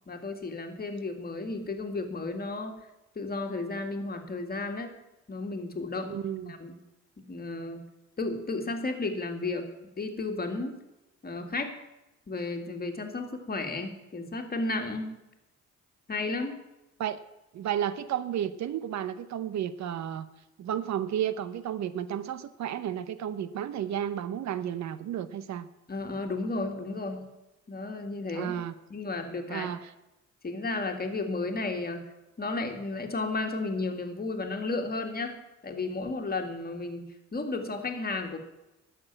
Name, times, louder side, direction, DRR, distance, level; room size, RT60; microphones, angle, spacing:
voice 1, 0.1-2.7 3.2-5.0 5.3-6.1 6.5-6.8 7.2-7.8 8.2-9.7 10.0-10.7 11.2-11.7 12.3-15.1 16.1-16.6 25.9-27.3 27.7-28.6 28.9-29.7 30.4-32.0 32.4-35.4 35.6-37.0 37.3-38.4, left 3 dB, 30° left, 4 dB, 2.0 m, -33 dB
voice 2, 6.1-6.6 17.0-17.2 17.5-20.3 20.6-25.7 28.3-28.7 29.5-29.9, right 10 dB, 65° right, 14 dB, 0.7 m, -32 dB
12.0 x 6.8 x 8.9 m, 0.98 s
cardioid pair, 90°, 30 cm